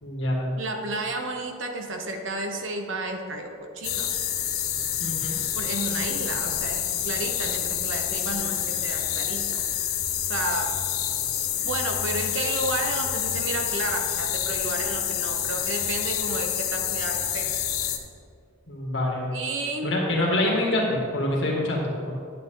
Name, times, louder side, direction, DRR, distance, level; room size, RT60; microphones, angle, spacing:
voice 1, 0.0-0.5 5.0-5.4 18.7-19.4 19.8-22.1, left 1 dB, 60° left, -2 dB, 2.1 m, -26 dB
voice 2, 0.6-4.2 5.5-9.6 10.2-10.7 11.6-17.5 19.3-19.9, right 2 dB, 65° right, 3 dB, 1.0 m, -32 dB
sound 1, 3.8-18.0, left 10 dB, 90° left, 0.9 m, -28 dB
10.0 x 8.6 x 3.8 m, 2.3 s
head